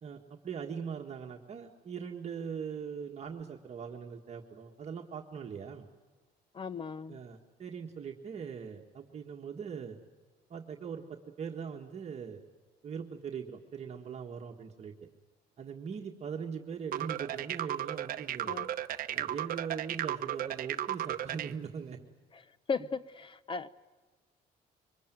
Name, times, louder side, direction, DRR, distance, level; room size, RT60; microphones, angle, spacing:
voice 1, 0.0-5.9 7.1-10.0 10.5-12.4 12.8-14.9 15.6-18.6 19.1-22.0, right 6 dB, 40° right, 1 dB, 1.6 m, -41 dB
voice 2, 6.5-7.2 18.4-18.7 22.3-22.4 22.7-23.7, left 5 dB, 30° left, 16 dB, 0.7 m, -36 dB
sound 1, 16.9-21.5, right 12 dB, 60° right, 0.8 m, -35 dB
24.0 x 20.0 x 9.2 m, 1.3 s
cardioid pair, 110°, 17 cm